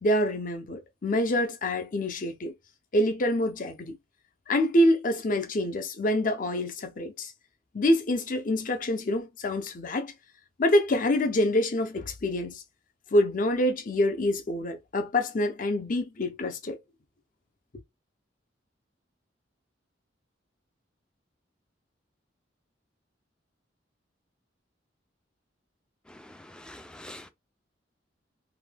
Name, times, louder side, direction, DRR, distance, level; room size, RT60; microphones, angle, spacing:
voice 1, 0.0-2.5 2.9-4.0 4.5-7.3 7.7-10.1 10.6-12.6 13.1-16.8, left 1 dB, 45° left, 0.6 m, -26 dB
voice 2, 26.1-27.3, left 1 dB, 5° left, 0.4 m, -46 dB
2.7 x 2.2 x 3.3 m
head